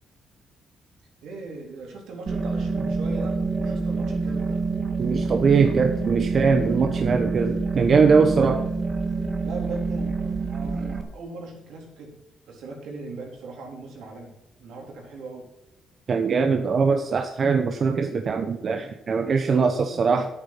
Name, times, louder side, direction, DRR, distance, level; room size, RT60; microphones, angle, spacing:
voice 1, 1.2-4.6 9.4-12.1 12.5-15.4 19.4-20.3, right 2 dB, 80° right, 0 dB, 3.9 m, -39 dB
sound 1, 2.3-11.0, right 4 dB, 30° right, 1.6 m, -27 dB
voice 2, 5.0-8.7 16.1-20.3, right 5 dB, 50° right, 6 dB, 0.9 m, -21 dB
9.6 x 8.7 x 5.8 m, 0.92 s
cardioid pair, 90°, 0 cm